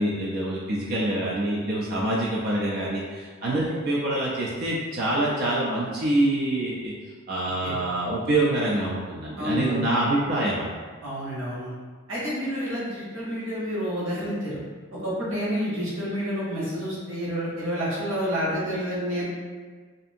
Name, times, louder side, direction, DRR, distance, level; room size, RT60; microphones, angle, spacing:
voice 1, 0.0-6.9 7.3-10.7, right 1 dB, 45° right, -5 dB, 0.3 m, -25 dB
voice 2, 9.4-9.8 11.0-11.7 12.1-14.6 14.9-19.2, equal, 65° right, -8 dB, 1.1 m, -29 dB
2.6 x 2.5 x 2.5 m, 1.5 s
head